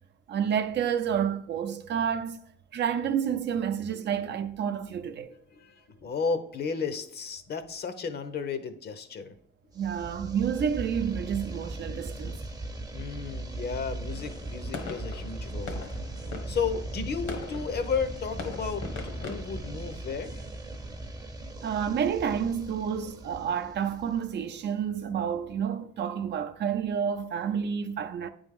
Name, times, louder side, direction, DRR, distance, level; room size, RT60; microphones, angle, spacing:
voice 1, 0.3-2.4 2.7-5.3 9.7-12.4 21.6-28.3, right 8 dB, 60° right, 0.6 m, -29 dB
voice 2, 5.5-9.3 12.9-15.9 16.5-20.4, left 5 dB, 55° left, 0.8 m, -33 dB
sound 1, 9.8-24.6, right 2 dB, 20° right, 0.7 m, -38 dB
sound 2, 14.1-19.4, left 4 dB, 70° left, 1.3 m, -41 dB
9.0 x 3.5 x 3.6 m
cardioid pair, 90°, 20 cm